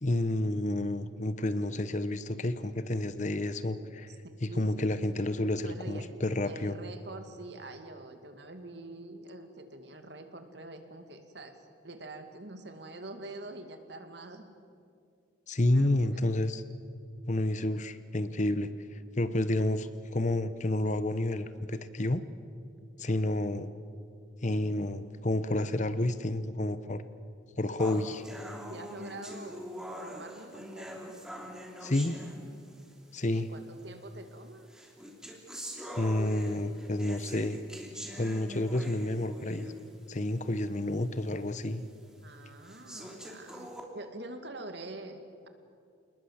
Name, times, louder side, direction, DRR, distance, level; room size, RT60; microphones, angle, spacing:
voice 1, 0.0-4.1 4.4-6.8 15.5-16.6 17.3-22.2 23.0-23.7 24.4-27.0 27.6-28.2 31.8-32.2 33.1-33.5 36.0-37.6 38.2-39.7 40.1-41.8, left 1 dB, 40° left, 12 dB, 1.0 m, -30 dB
voice 2, 4.4-4.9 5.6-6.1 6.5-11.5 11.8-14.5 15.6-16.2 22.8-23.3 27.9-28.1 28.7-29.7 30.0-31.1 33.2-34.7 42.2-45.5, right 2 dB, 60° right, 7 dB, 2.3 m, -45 dB
sound 1, 27.8-32.9 33.8-33.9 34.7-40.0 40.4-40.5 41.0-41.1 41.8-41.9 42.6-43.8, equal, 5° right, 3.0 m, -43 dB
28.5 x 20.0 x 8.1 m, 2.4 s
head